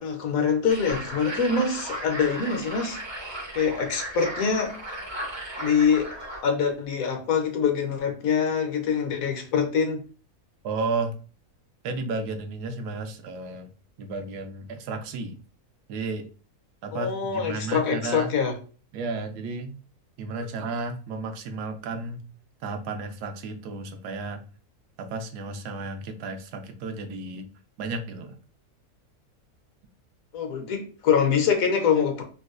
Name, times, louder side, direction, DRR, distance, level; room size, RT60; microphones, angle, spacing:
voice 1, 0.0-3.0 3.5-4.7 5.6-6.2 6.4-10.0 16.9-18.6 30.3-32.2, left 6 dB, 70° left, 1.0 m, -24 dB
sound 1, 0.7-6.4, right 1 dB, 45° right, 0.3 m, -36 dB
voice 2, 10.6-11.2 11.8-13.7 14.0-15.4 15.9-16.3 16.8-18.3 18.9-19.8 20.2-22.2 22.6-24.4 25.0-27.5 27.8-28.4, right 3 dB, 85° right, 1.1 m, -33 dB
4.0 x 2.2 x 2.4 m
omnidirectional pair, 1.7 m